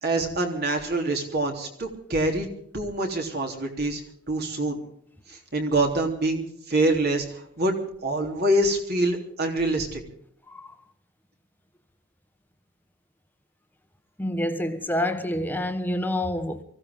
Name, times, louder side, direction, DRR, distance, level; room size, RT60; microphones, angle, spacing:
voice 1, 0.0-2.5 2.7-4.0 4.3-4.8 5.3-10.0, right 1 dB, 45° right, 3.4 m, -25 dB
voice 2, 14.2-16.6, left 1 dB, 10° left, 1.3 m, -27 dB
24.0 x 16.0 x 3.8 m
head